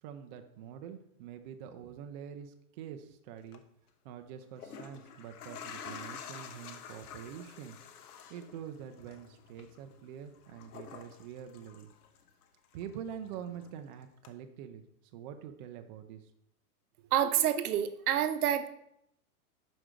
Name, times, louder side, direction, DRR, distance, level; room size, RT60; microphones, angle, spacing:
voice 1, 0.0-3.6 4.0-7.8 8.3-11.9 12.7-14.8 15.1-16.3 17.0-17.1, right 9 dB, 35° right, 7 dB, 0.4 m, -45 dB
sound 1, 3.4-3.6 4.4-12.4 12.7-13.8 14.2-14.3, left 7 dB, 70° left, 1.0 m, -49 dB
voice 2, 17.1-18.7, right 10 dB, 70° right, 11 dB, 0.9 m, -28 dB
6.1 x 5.0 x 5.0 m, 0.76 s
hypercardioid pair, 140°, 46 cm